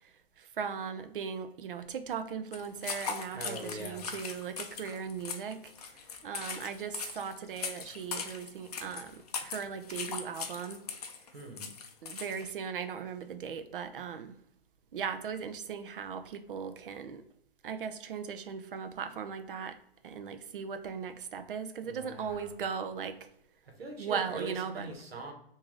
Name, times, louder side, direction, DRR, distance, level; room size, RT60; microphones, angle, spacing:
voice 1, 0.0-5.7 6.2-10.8 12.0-14.4 14.9-17.2 17.6-19.8 20.0-23.2 24.0-24.9, right 6 dB, 60° right, 9 dB, 0.5 m, -38 dB
sound 1, 2.5-12.5, left 6 dB, 40° left, 0.5 m, -40 dB
voice 2, 3.3-4.1 11.3-11.7 21.8-22.6 23.8-25.3, right 2 dB, 75° right, 2 dB, 1.2 m, -42 dB
3.6 x 2.7 x 3.1 m, 0.75 s
hypercardioid pair, 160°, 30 cm